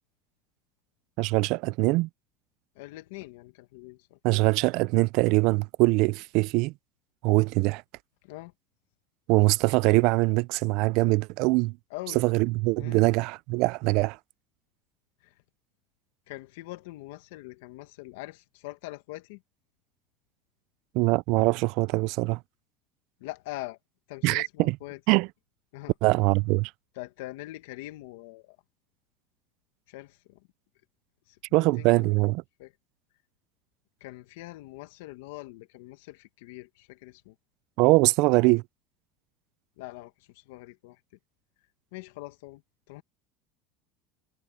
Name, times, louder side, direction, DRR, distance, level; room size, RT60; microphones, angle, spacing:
voice 1, 1.2-2.1 4.2-6.7 7.2-7.8 9.3-11.8 12.1-14.2 20.9-22.4 24.2-24.8 25.1-25.3 26.0-26.7 31.5-32.4 37.8-38.6, right 24 dB, 65° right, 0.4 m, -23 dB
voice 2, 2.8-4.2 8.2-8.5 11.9-12.2 12.8-13.0 15.2-15.3 16.3-19.4 23.2-23.8 24.1-25.0 25.7-25.9 27.0-28.6 29.9-30.5 31.3-32.1 32.6-32.7 34.0-37.4 39.8-41.0 41.9-42.6 42.9-43.0, left 19 dB, 85° left, 1.7 m, -43 dB
supercardioid pair, 130°, 0 cm